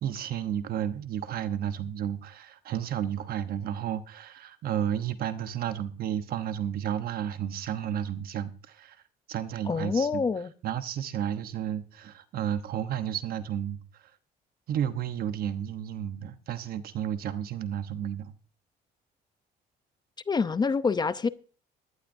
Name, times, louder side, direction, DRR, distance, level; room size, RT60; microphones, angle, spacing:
voice 1, 0.0-9.0 9.3-10.2 10.6-14.1 14.7-18.3, right 10 dB, 60° right, 1.0 m, -32 dB
voice 2, 9.7-10.5 20.3-21.3, left 5 dB, 25° left, 0.6 m, -26 dB
19.0 x 11.5 x 2.7 m
cardioid pair, 110°, 17 cm